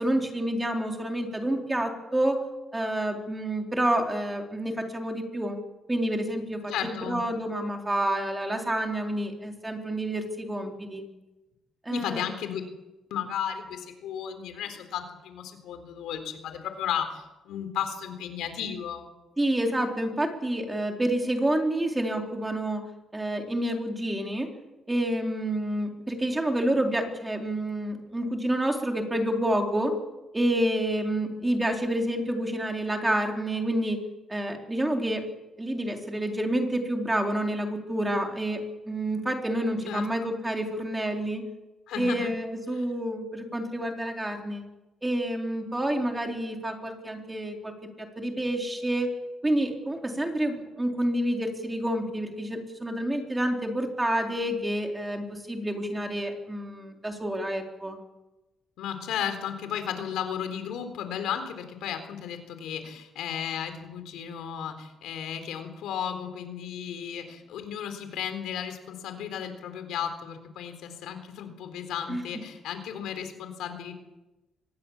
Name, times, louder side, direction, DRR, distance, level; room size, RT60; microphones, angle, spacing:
voice 1, 0.0-2.4 2.7-5.6 5.9-11.0 11.9-12.3 19.4-22.8 23.1-24.5 24.9-30.0 30.3-34.0 34.3-35.2 35.6-41.4 42.0-44.6 45.0-47.7 48.0-49.1 49.4-58.0 72.1-72.2, right 1 dB, 10° right, 2 dB, 3.9 m, -28 dB
voice 2, 6.7-7.2 11.9-12.6 13.1-19.0 39.9-40.3 41.9-42.4 42.8-42.9 58.8-73.9, left 9 dB, 85° left, 8 dB, 3.9 m, -34 dB
24.5 x 20.5 x 7.3 m, 1.0 s
cardioid pair, 125°, 0 cm